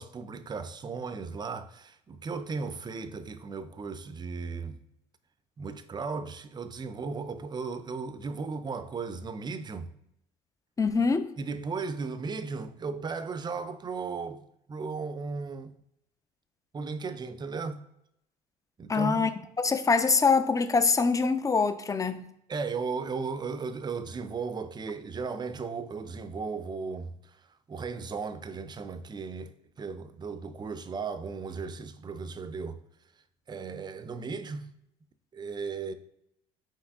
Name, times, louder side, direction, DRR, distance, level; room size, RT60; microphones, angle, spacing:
voice 1, 0.0-4.8 5.6-9.9 11.4-14.4 14.7-15.7 16.7-17.8 18.8-19.3 22.5-27.1 27.7-32.8 33.5-34.7 35.3-35.9, right 4 dB, 25° right, 0.5 m, -36 dB
voice 2, 10.8-11.3 18.9-19.3 19.6-22.3, left 4 dB, 20° left, 0.5 m, -24 dB
4.6 x 3.0 x 3.5 m
supercardioid pair, 70°, 17 cm